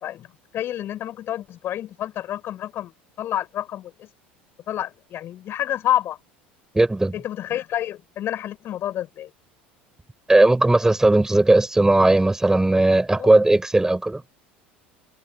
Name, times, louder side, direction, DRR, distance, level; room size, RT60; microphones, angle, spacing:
voice 1, 0.5-2.9 3.2-4.1 4.7-6.2 7.1-9.3 13.2-13.3, left 12 dB, 40° left, 6.4 m, -28 dB
voice 2, 6.7-7.2 10.3-14.2, right 2 dB, 10° right, 5.4 m, -17 dB
figure-of-eight pair, 70°, 6 cm